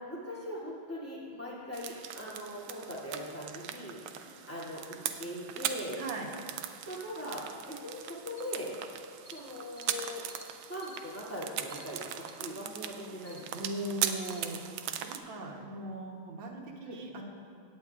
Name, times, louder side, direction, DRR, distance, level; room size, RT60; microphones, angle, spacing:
voice 1, 0.0-6.0 6.9-8.8 9.3-10.2 10.7-13.7 16.8-17.0, equal, 5° left, -8 dB, 2.3 m, -41 dB
sound 1, 1.7-15.2, right 10 dB, 85° right, 1.5 m, -40 dB
voice 2, 6.0-6.3 13.5-14.7 15.1-17.2, right 2 dB, 65° right, 0 dB, 1.8 m, -39 dB
sound 2, 8.4-8.5 9.2-9.4 9.7-10.0 10.3-10.5 10.8-11.0 11.7-11.9 12.2-12.3 12.8-12.9 13.2-13.4 14.2-14.4, equal, 45° left, 1.8 m, -53 dB
17.0 x 9.0 x 2.4 m, 2.3 s
omnidirectional pair, 2.4 m